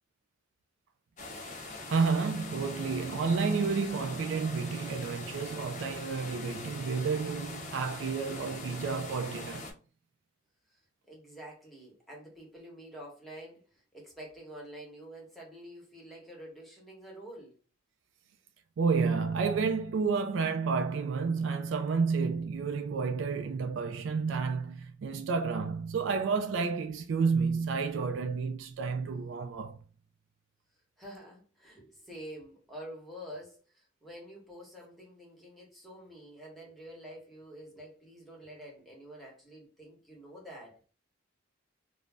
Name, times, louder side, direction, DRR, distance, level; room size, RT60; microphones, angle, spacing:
sound 1, 1.2-9.7, left 3 dB, 40° left, 0.5 m, -43 dB
voice 1, 1.9-9.7 18.8-29.8, right 5 dB, 65° right, 0.3 m, -30 dB
voice 2, 11.1-17.5 31.0-40.8, equal, ahead, 1.0 m, -48 dB
2.5 x 2.0 x 3.3 m
head